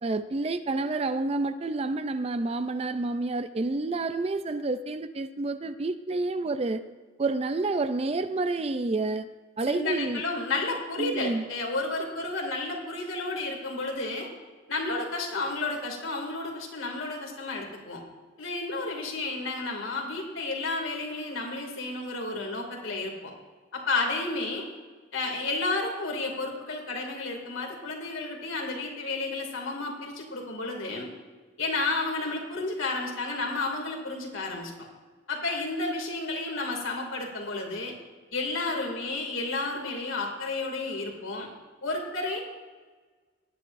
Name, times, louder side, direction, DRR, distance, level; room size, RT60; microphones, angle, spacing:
voice 1, 0.0-6.8 7.2-9.3 9.6-10.2 11.0-11.4, right 3 dB, 30° right, 11 dB, 0.4 m, -29 dB
voice 2, 9.7-14.3 14.7-18.0 18.4-23.3 23.7-24.7 25.1-31.1 31.6-34.7 35.3-37.9 38.3-41.5 41.8-42.4, left 3 dB, 75° left, 1 dB, 2.5 m, -31 dB
19.0 x 9.7 x 2.6 m, 1.4 s
head